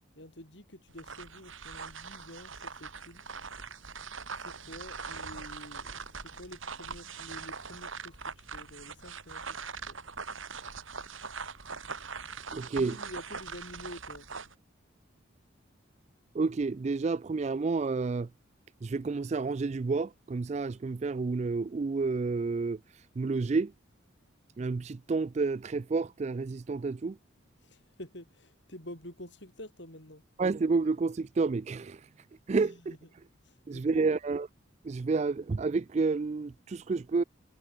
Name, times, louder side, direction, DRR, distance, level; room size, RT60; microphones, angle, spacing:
voice 1, 0.2-3.2 4.4-10.0 12.7-14.3 27.6-30.2 32.6-33.0 33.4-34.1, left 1 dB, 55° left, 5.7 m, -48 dB
sound 1, 0.9-14.6, right 5 dB, 75° right, 5.0 m, -42 dB
voice 2, 12.5-13.0 16.3-18.3 18.8-23.7 24.6-27.2 30.4-32.1 32.5-33.0 33.7-34.5 34.8-37.2, right 4 dB, 35° right, 0.3 m, -30 dB
head